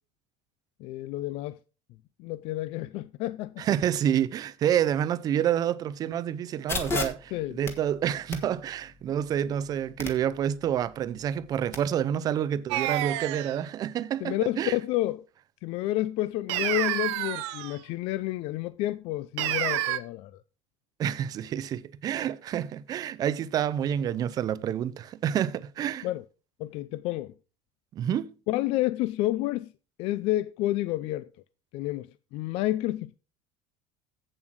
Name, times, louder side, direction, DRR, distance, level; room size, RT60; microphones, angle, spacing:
voice 1, 0.8-1.6 2.2-3.7 7.3-7.6 14.2-15.2 15.6-20.3 26.0-26.2 26.6-27.3 28.5-29.7 30.0-31.3 31.7-33.2, left 16 dB, 45° left, 0.4 m, -30 dB
voice 2, 3.6-14.8 21.0-26.1 27.9-28.3, right 10 dB, 25° right, 0.5 m, -28 dB
sound 1, 6.7-11.8, left 3 dB, 15° left, 1.3 m, -37 dB
sound 2, 12.7-13.6 16.5-17.8 19.4-20.0, right 15 dB, 90° right, 0.9 m, -29 dB
8.0 x 7.4 x 5.9 m
cardioid pair, 175°, 14 cm